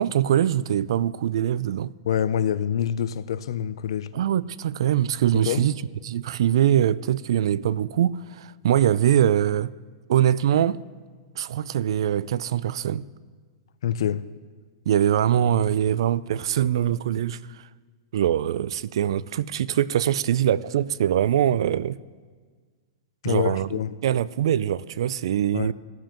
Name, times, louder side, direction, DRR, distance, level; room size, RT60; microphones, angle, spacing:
voice 1, 0.0-1.9 4.1-5.8 6.0-9.7 10.1-10.8 11.4-13.1 14.9-17.6 18.1-22.0 23.3-25.7, right 10 dB, 75° right, 0.3 m, -23 dB
voice 2, 2.1-4.1 5.4-5.7 13.8-14.3 23.2-24.0 25.5-25.7, left 9 dB, 75° left, 0.4 m, -26 dB
16.5 x 7.4 x 3.0 m
hypercardioid pair, 145°, 3 cm